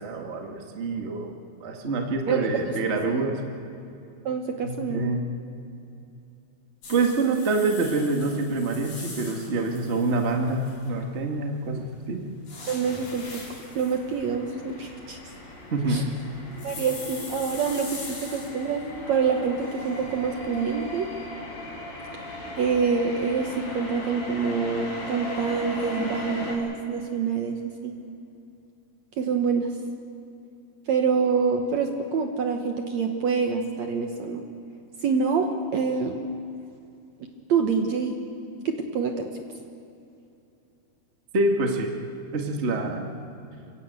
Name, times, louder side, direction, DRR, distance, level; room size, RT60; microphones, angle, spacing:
voice 1, 0.0-1.3 1.6-3.4 4.6-5.3 6.9-12.2 15.7-16.0 41.3-41.9 42.3-43.1, right 3 dB, 90° right, 2 dB, 0.6 m, -26 dB
voice 2, 2.3-2.7 3.1-3.3 4.2-5.1 12.7-13.4 13.7-15.2 15.9-16.0 16.6-21.1 22.6-27.9 29.2-29.7 30.9-34.4 35.0-36.2 37.2-38.2 38.6-39.3, right 5 dB, 70° right, 4 dB, 1.6 m, -26 dB
sound 1, 6.8-11.2 11.7-18.9 19.2-20.7, left 3 dB, 85° left, 8.2 m, -42 dB
sound 2, 12.8-26.5, left 1 dB, 60° left, 6.1 m, -38 dB
29.0 x 16.5 x 8.2 m, 2.7 s
omnidirectional pair, 4.7 m